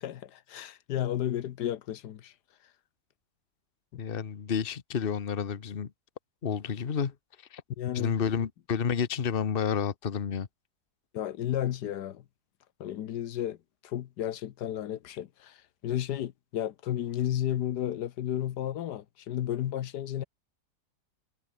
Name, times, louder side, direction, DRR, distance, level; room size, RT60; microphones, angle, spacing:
voice 1, 0.0-2.3 3.9-4.0 7.8-8.1 11.1-12.2 12.8-13.6 13.8-20.2, left 11 dB, 85° left, 1.5 m, -33 dB
voice 2, 4.0-5.9 6.4-7.1 7.5-7.6 7.9-10.5, left 7 dB, 40° left, 1.2 m, -30 dB
omnidirectional pair, 1.7 m